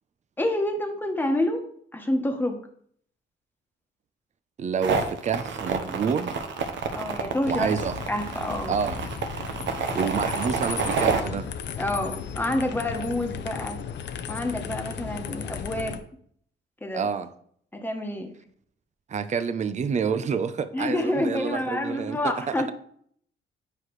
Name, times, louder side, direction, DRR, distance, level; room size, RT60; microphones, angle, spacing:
voice 1, 0.4-1.6 1.9-2.6 6.9-7.7 8.1-8.8 11.8-13.8 14.3-16.0 16.8-17.1 17.7-18.3 20.7-22.7, left 1 dB, 10° left, 1.3 m, -28 dB
voice 2, 4.6-6.4 7.5-8.0 8.7-9.0 9.7-11.5 16.9-17.3 19.1-22.3, right 6 dB, 35° right, 0.6 m, -28 dB
sound 1, 4.8-11.2, right 5 dB, 70° right, 1.0 m, -28 dB
sound 2, 7.4-16.0, left 7 dB, 60° left, 0.7 m, -35 dB
9.5 x 4.8 x 3.1 m
cardioid pair, 90°, 20 cm